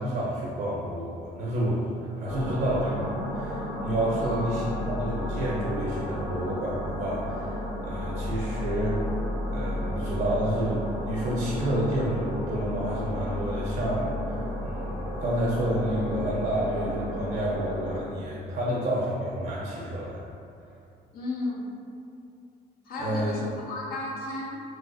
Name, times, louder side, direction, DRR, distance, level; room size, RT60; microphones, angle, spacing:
voice 1, 0.0-1.8 2.2-9.2 9.5-20.2 23.0-23.4, right 1 dB, 60° right, -5 dB, 0.6 m, -29 dB
sound 1, 2.2-18.0, left 1 dB, 90° left, 0.9 m, -33 dB
voice 2, 4.2-4.5 18.7-18.8 21.1-21.6 22.9-24.6, left 2 dB, 65° left, -3 dB, 0.6 m, -34 dB
2.9 x 2.8 x 2.6 m, 2.5 s
cardioid pair, 110°, 17 cm